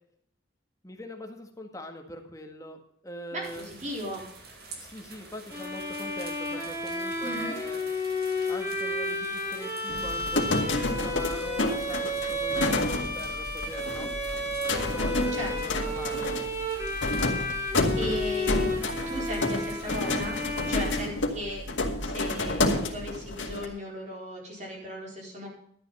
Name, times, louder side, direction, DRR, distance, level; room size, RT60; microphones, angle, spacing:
voice 1, 0.8-2.8 3.0-3.7 4.8-7.8 8.5-14.1 14.7-16.3, equal, 15° left, 3 dB, 1.7 m, -42 dB
voice 2, 3.3-4.2 7.2-7.6 15.3-15.8 18.0-18.7 19.1-20.4 20.7-21.6 22.0-25.5, equal, 35° right, -1 dB, 4.5 m, -36 dB
sound 1, 3.4-21.1, right 3 dB, 50° right, 2.6 m, -49 dB
Bowed string instrument, 5.5-21.6, left 1 dB, 15° right, 3.6 m, -32 dB
sound 2, 9.9-23.7, left 2 dB, 70° left, 2.0 m, -30 dB
12.5 x 9.7 x 5.5 m, 0.64 s
head